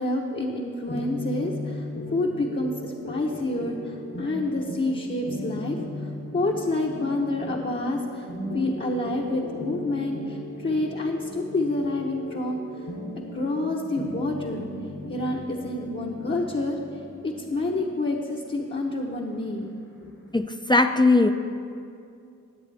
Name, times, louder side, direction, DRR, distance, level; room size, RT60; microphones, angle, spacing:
voice 1, 0.0-5.8 6.3-8.3 8.5-12.6 13.3-14.7 15.1-16.8 17.2-19.7 20.0-20.1, left 2 dB, 40° left, -2 dB, 1.0 m, -28 dB
sound 1, 0.9-20.4, left 1 dB, 65° left, 2.8 m, -37 dB
voice 2, 20.3-21.3, left 2 dB, 15° left, 7 dB, 0.5 m, -19 dB
18.5 x 7.8 x 3.5 m, 2.4 s
cardioid pair, 55°, 30 cm